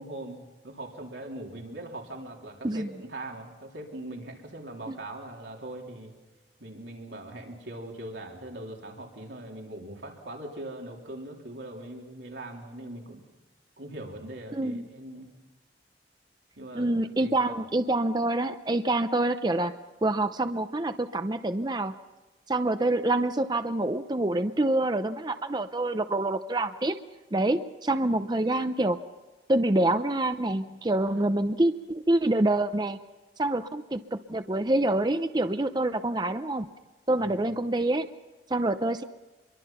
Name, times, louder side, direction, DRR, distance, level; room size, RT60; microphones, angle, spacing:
voice 1, 0.0-6.1 6.6-13.2 13.8-15.3 16.6-17.6 31.1-31.2 37.2-37.5, right 1 dB, 85° right, 0 dB, 3.6 m, -41 dB
voice 2, 14.5-14.8 16.7-19.7 20.0-21.9 22.5-27.0 27.3-29.0 29.5-33.0 33.4-36.7 37.1-38.1 38.5-39.0, right 2 dB, 25° right, 10 dB, 0.6 m, -26 dB
26.5 x 23.0 x 5.8 m, 1.2 s
head